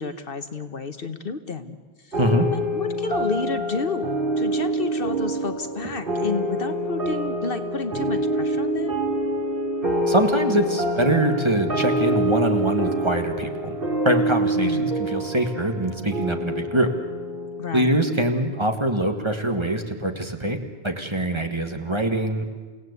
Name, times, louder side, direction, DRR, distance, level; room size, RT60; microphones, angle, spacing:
voice 1, 0.0-1.8 2.0-2.2 2.5-9.0 14.6-14.8 17.6-17.9, left 4 dB, 55° left, 9 dB, 1.2 m, -30 dB
sound 1, 2.1-18.9, right 1 dB, 50° right, 3.2 m, -26 dB
voice 2, 2.2-2.5 10.1-13.8 14.0-16.9 17.7-22.4, right 1 dB, 25° right, 5 dB, 1.7 m, -23 dB
29.0 x 17.0 x 8.3 m, 1.4 s
omnidirectional pair, 1.1 m